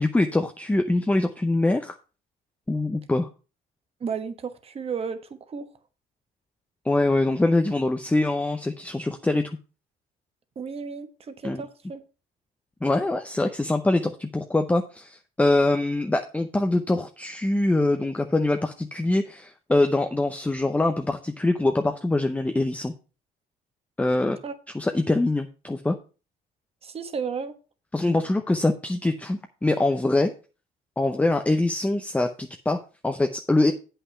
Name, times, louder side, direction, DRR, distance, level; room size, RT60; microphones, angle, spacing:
voice 1, 0.0-2.0 2.7-3.3 6.8-9.5 11.4-11.6 12.8-22.9 24.0-24.4 24.7-26.0 27.9-30.3 31.0-33.7, left 2 dB, 10° left, 0.7 m, -24 dB
voice 2, 4.0-5.2 5.5-5.7 10.5-12.0 24.4-24.5 26.8-27.5, right 6 dB, 35° right, 1.2 m, -33 dB
8.4 x 5.7 x 5.5 m
cardioid pair, 110°, 17 cm